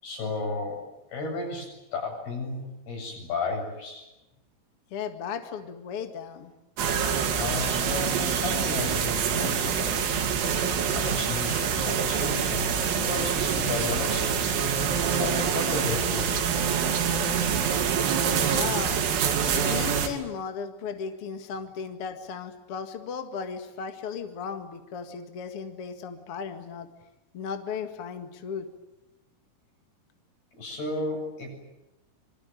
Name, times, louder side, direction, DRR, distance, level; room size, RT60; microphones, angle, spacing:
voice 1, 0.0-0.8 1.1-4.0 7.4-10.0 10.9-14.7 15.2-16.4 30.6-31.6, left 3 dB, 50° left, 2 dB, 9.2 m, -33 dB
voice 2, 4.9-6.5 18.5-19.0 19.5-26.9 27.3-28.7, left 6 dB, 70° left, 7 dB, 1.3 m, -36 dB
sound 1, 6.8-20.1, right 7 dB, 80° right, 5.3 m, -26 dB
26.5 x 23.0 x 9.2 m, 0.94 s
omnidirectional pair, 6.0 m